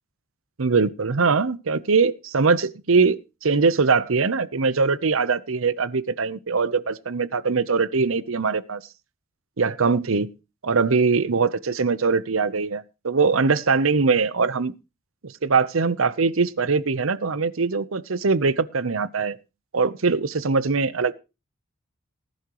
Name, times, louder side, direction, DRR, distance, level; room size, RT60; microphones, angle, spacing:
voice 1, 0.6-8.8 9.6-10.3 10.6-14.7 15.2-19.4 19.7-21.1, right 4 dB, 80° right, 0.8 m, -22 dB
19.5 x 10.5 x 3.0 m
head